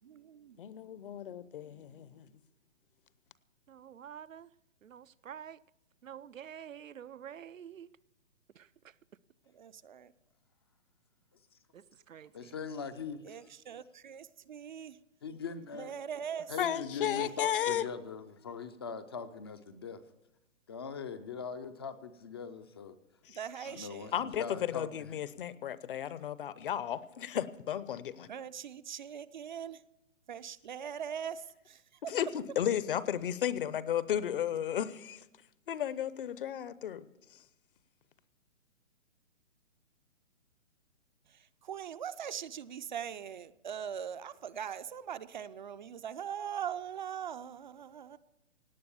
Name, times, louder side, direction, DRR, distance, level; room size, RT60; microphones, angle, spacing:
voice 1, 0.0-1.3 1.6-2.4 9.5-10.1 13.2-15.0 15.7-16.5 17.2-17.3 23.3-24.2 28.3-29.8 30.3-32.2 41.3-48.2, right 8 dB, 40° right, 0.5 m, -42 dB
voice 2, 0.6-2.3 16.6-17.8 24.1-28.3 32.1-35.2 35.7-37.1, left 10 dB, 45° left, 0.8 m, -34 dB
voice 3, 3.7-4.5 4.8-5.6 6.0-7.9 8.6-8.7 11.7-12.5, right 9 dB, 80° right, 0.7 m, -48 dB
voice 4, 12.3-13.2 15.2-15.9 16.5-20.0 20.7-22.9 23.7-25.1, left 6 dB, 20° left, 0.5 m, -41 dB
17.5 x 9.4 x 7.0 m
hypercardioid pair, 140°, 38 cm